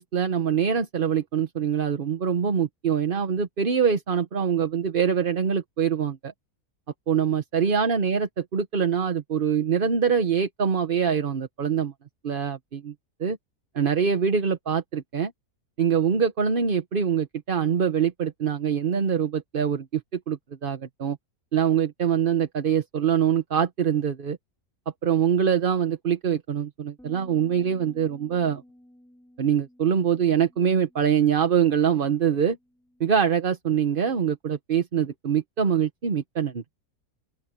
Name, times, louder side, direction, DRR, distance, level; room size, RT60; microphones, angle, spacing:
voice 1, 0.0-6.3 7.1-11.9 12.2-12.9 13.2-13.4 13.7-15.3 15.8-21.2 21.5-24.4 25.0-28.6 29.4-32.6 33.0-36.6, right 7 dB, 40° right, 1.0 m, -24 dB
sound 1, 27.0-33.2, equal, ahead, 3.3 m, -54 dB
open air
omnidirectional pair, 1.6 m